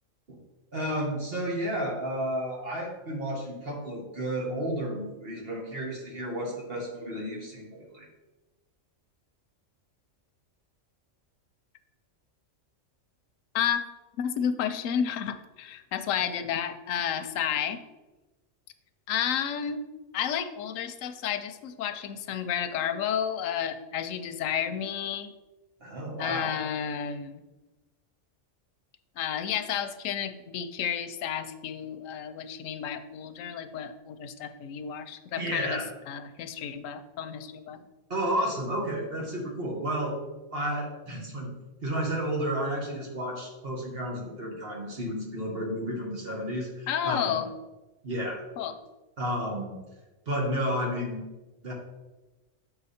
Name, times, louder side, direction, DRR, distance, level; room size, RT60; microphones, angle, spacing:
voice 1, 0.7-8.1 25.8-26.5 35.3-35.9 37.7-37.8 38.1-40.2 40.5-41.5 41.8-47.4 48.0-48.4 49.2-49.8 50.3-51.2 51.6-51.7, equal, 50° right, -1 dB, 1.6 m, -32 dB
voice 2, 14.2-17.8 19.1-19.8 20.1-25.3 26.2-27.4 29.2-37.8 46.9-47.5 48.6-48.8, left 8 dB, 90° left, 10 dB, 1.0 m, -31 dB
7.0 x 4.9 x 4.2 m, 1.1 s
omnidirectional pair, 1.3 m